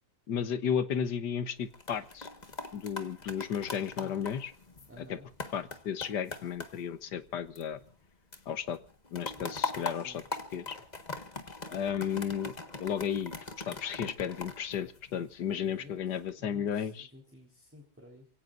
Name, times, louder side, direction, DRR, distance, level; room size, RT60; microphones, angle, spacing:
voice 1, 0.3-2.3 2.7-4.5 5.0-5.2 5.5-7.8 8.5-8.8 9.1-10.2 10.5-10.8 11.7-12.5 12.8-13.3 13.7-17.1, left 8 dB, 75° left, 13 dB, 1.7 m, -33 dB
sound 1, 1.6-8.1 8.3-15.5 16.0-16.3, left 3 dB, 25° left, 1.6 m, -42 dB
voice 2, 4.9-5.3 9.9-10.2 15.6-16.0 16.4-18.2, left 1 dB, 5° right, -1 dB, 4.0 m, -53 dB
29.0 x 17.5 x 2.6 m, 0.42 s
omnidirectional pair, 1.9 m